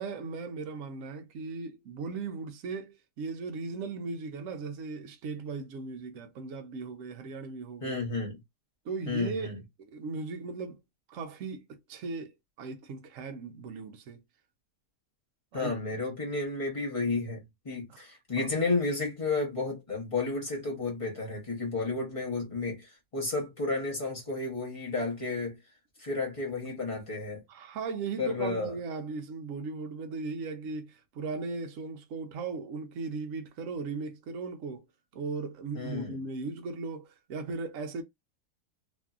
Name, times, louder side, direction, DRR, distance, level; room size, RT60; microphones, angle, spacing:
voice 1, 0.0-8.0 8.8-9.5 9.8-10.8 11.1-14.2 15.5-15.7 18.0-18.1 18.4-18.5 27.5-34.8 35.1-38.0, right 4 dB, 65° right, 0.9 m, -37 dB
voice 2, 7.8-8.4 9.1-9.6 15.5-25.6 26.0-27.4 28.2-28.7 35.7-36.2, left 3 dB, 30° left, 0.7 m, -32 dB
3.0 x 2.6 x 2.4 m
omnidirectional pair, 1.8 m